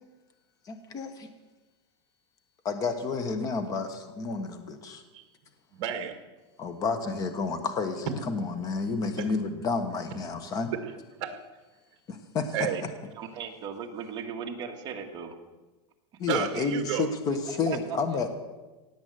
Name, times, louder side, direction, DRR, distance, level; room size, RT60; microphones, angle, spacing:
voice 1, 0.7-1.3 2.6-5.0 6.6-10.7 12.1-12.5 16.2-18.3, left 4 dB, 25° left, 8 dB, 1.3 m, -30 dB
voice 2, 5.7-6.2 9.2-9.3 10.7-11.4 12.5-12.8 16.3-17.1, right 9 dB, 45° right, 6 dB, 1.9 m, -32 dB
voice 3, 13.1-15.3 17.5-18.2, right 7 dB, 30° right, 1 dB, 1.7 m, -37 dB
17.5 x 8.2 x 7.8 m, 1.2 s
supercardioid pair, 160°, 15 cm